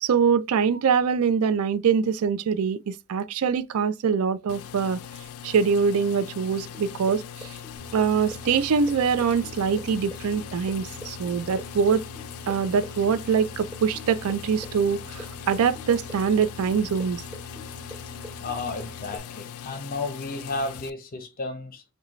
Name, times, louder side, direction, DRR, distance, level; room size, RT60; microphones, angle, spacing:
voice 1, 0.0-5.0 5.4-7.5 7.9-12.1 12.5-17.2, right 6 dB, 80° right, 0.4 m, -24 dB
sound 1, 4.5-20.9, left 9 dB, 75° left, 0.3 m, -41 dB
sound 2, 6.7-14.4 14.6-19.2, equal, 15° right, 2.1 m, -43 dB
sound 3, 7.8-19.2, equal, 65° right, 0.7 m, -45 dB
voice 2, 18.4-21.8, left 3 dB, 45° left, 0.7 m, -33 dB
4.8 x 2.2 x 3.0 m
head